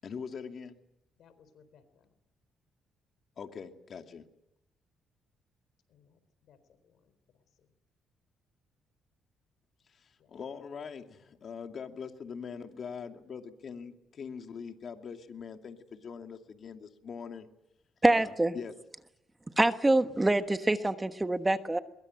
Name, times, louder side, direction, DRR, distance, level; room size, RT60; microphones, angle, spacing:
voice 1, 0.0-0.8 3.4-4.2 10.3-17.5 18.2-18.3 18.5-18.7, left 6 dB, 55° left, 2.5 m, -42 dB
voice 2, 1.2-2.1 5.9-7.7 10.2-10.3 10.8-11.4, left 7 dB, 75° left, 4.1 m, -64 dB
voice 3, 18.0-18.6 19.6-21.8, right 2 dB, 15° right, 1.3 m, -25 dB
22.5 x 22.0 x 7.9 m
cardioid pair, 90°, 0 cm